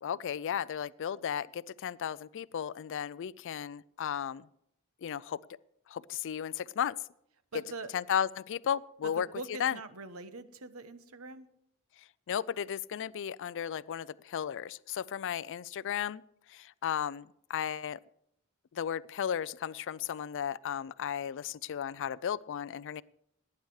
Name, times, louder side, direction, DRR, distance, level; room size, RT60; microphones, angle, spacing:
voice 1, 0.0-4.5 5.0-5.4 5.9-7.0 7.9-9.3 9.6-9.8 12.3-16.2 16.5-18.0 18.7-23.0, left 8 dB, 60° left, 19 dB, 0.4 m, -34 dB
voice 2, 7.5-7.9 9.0-11.5, right 3 dB, 70° right, 12 dB, 1.1 m, -43 dB
18.0 x 9.7 x 4.7 m, 0.76 s
head